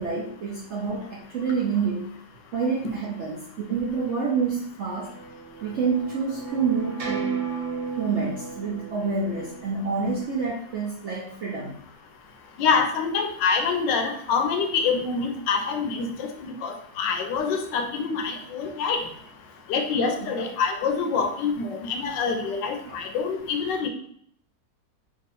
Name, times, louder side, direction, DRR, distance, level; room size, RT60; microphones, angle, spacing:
voice 1, 0.0-2.1 2.5-5.1 5.6-7.3 8.0-11.8 16.1-16.2 20.2-20.4 22.9-23.0, right 5 dB, 80° right, -3 dB, 0.6 m, -28 dB
sound 1, 4.7-10.5, right 5 dB, 45° right, 1.2 m, -35 dB
voice 2, 12.6-19.0 19.7-23.9, left 5 dB, 80° left, 5 dB, 1.2 m, -26 dB
3.6 x 2.5 x 4.0 m, 0.65 s
omnidirectional pair, 1.9 m